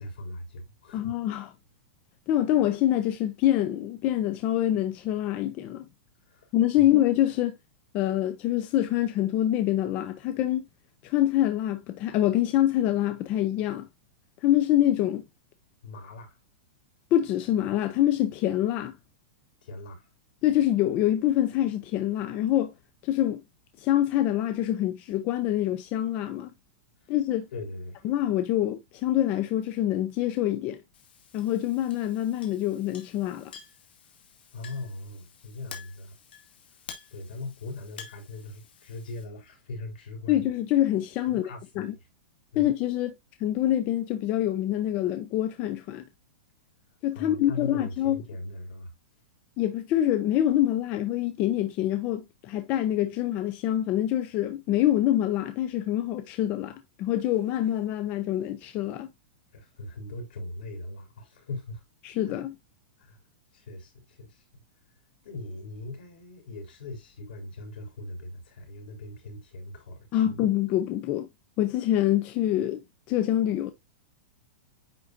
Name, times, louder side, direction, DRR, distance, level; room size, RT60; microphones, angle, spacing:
voice 1, 0.0-1.2 6.3-6.5 6.8-6.9 15.8-16.4 19.6-20.1 27.5-28.0 34.5-36.1 37.1-40.5 41.3-41.9 42.5-42.6 47.1-48.9 59.5-61.8 62.2-62.4 63.0-63.2 63.5-64.6 65.2-70.4, left 2 dB, 70° left, 3.7 m, -40 dB
voice 2, 0.9-1.5 2.3-5.9 6.5-7.6 7.9-10.6 11.0-13.9 14.4-15.3 17.1-18.9 20.4-22.7 23.0-23.4 23.8-26.5 27.1-27.5 28.0-30.8 31.3-33.5 40.3-41.4 41.8-41.9 42.6-43.1 43.4-46.0 47.0-48.2 49.6-59.1 62.0-62.6 70.1-71.3 71.6-72.8 73.1-73.7, left 12 dB, 25° left, 0.5 m, -25 dB
Chink clink, 30.9-39.2, left 7 dB, 85° left, 1.9 m, -49 dB
9.6 x 4.0 x 2.5 m
supercardioid pair, 170°, 5 cm